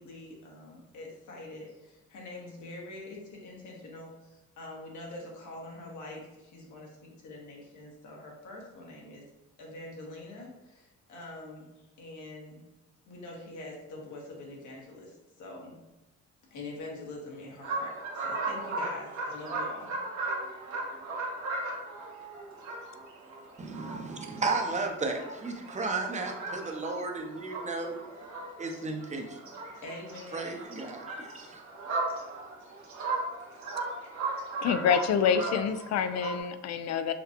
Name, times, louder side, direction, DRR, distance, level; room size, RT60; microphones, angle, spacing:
voice 1, 0.0-9.2 9.6-12.6 13.1-15.8 16.5-20.0 28.2-28.3 29.6-30.7, left 2 dB, 75° left, -2 dB, 1.4 m, -45 dB
sound 1, 17.6-28.8 29.0-36.4, right 2 dB, 65° right, 1.2 m, -37 dB
voice 2, 23.6-28.0 28.6-29.5 30.3-31.6, right 3 dB, 25° right, 3 dB, 0.7 m, -34 dB
voice 3, 34.6-37.1, left 7 dB, 60° left, 11 dB, 0.4 m, -27 dB
5.8 x 2.3 x 2.9 m, 1.0 s
cardioid pair, 90°, 30 cm